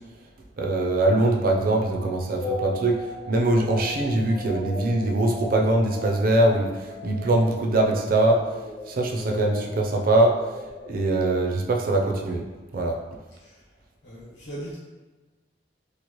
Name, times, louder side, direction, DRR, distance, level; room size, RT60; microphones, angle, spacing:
voice 1, 0.6-8.4 8.9-10.4 10.8-12.4 12.7-13.0, right 2 dB, 50° right, 1 dB, 0.4 m, -22 dB
sound 1, 2.4-11.6, left 1 dB, 25° left, 0.6 m, -36 dB
voice 2, 13.3-13.6 14.0-14.8, right 1 dB, 75° left, -8 dB, 1.0 m, -39 dB
3.0 x 2.4 x 2.9 m, 1.2 s
head